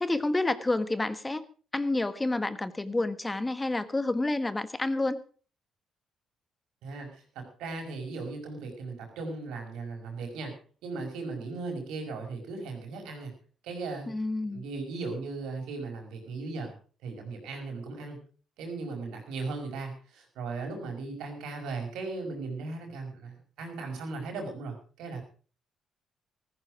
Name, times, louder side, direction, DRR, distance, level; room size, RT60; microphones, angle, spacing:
voice 1, 0.0-1.4 1.7-5.2 14.1-14.6, left 2 dB, 15° left, 13 dB, 1.2 m, -29 dB
voice 2, 6.8-10.5 10.8-13.3 13.6-14.1 14.5-16.7 17.0-18.2 18.6-25.2, right 3 dB, 90° right, 3 dB, 5.6 m, -37 dB
15.0 x 14.5 x 4.9 m, 0.39 s
cardioid pair, 90°, 0 cm